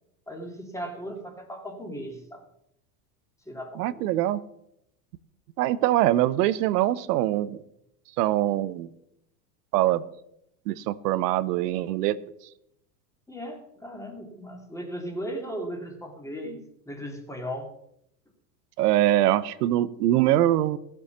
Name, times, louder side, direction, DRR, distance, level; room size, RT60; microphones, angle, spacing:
voice 1, 0.3-2.4 3.5-4.1 5.7-5.9 13.3-17.7, equal, 5° left, 3 dB, 2.6 m, -37 dB
voice 2, 3.8-4.4 5.6-7.6 8.2-8.9 9.7-10.0 10.7-12.2 18.8-20.8, right 14 dB, 70° right, 17 dB, 0.9 m, -23 dB
15.0 x 7.1 x 7.2 m, 0.78 s
supercardioid pair, 115°, 49 cm